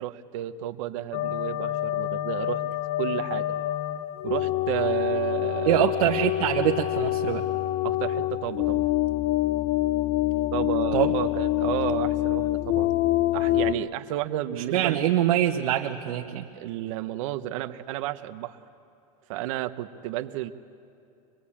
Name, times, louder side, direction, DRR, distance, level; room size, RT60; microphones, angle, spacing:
voice 1, 0.0-2.6 3.0-3.5 4.2-5.8 7.8-8.9 10.5-13.0 13.3-15.0 16.5-18.6 19.3-20.5, right 14 dB, 60° right, 10 dB, 1.0 m, -32 dB
sound 1, 1.1-13.7, left 15 dB, 35° left, 0.5 m, -26 dB
voice 2, 5.7-7.4 10.9-11.1 14.5-16.5, right 12 dB, 85° right, 1 dB, 1.2 m, -24 dB
24.0 x 21.5 x 8.7 m, 2.7 s
supercardioid pair, 160°, 18 cm